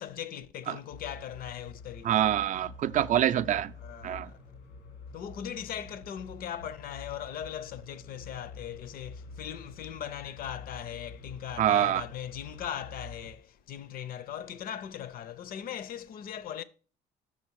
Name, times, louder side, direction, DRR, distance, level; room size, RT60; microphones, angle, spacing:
voice 1, 0.0-2.2 3.8-4.4 5.1-16.6, left 10 dB, 60° left, 0.6 m, -39 dB
sound 1, 0.9-13.3, left 4 dB, 90° left, 1.7 m, -48 dB
voice 2, 2.0-3.7 4.0-4.3 11.6-12.0, right 11 dB, 50° right, 0.4 m, -25 dB
7.1 x 5.9 x 4.7 m
cardioid pair, 110°, 17 cm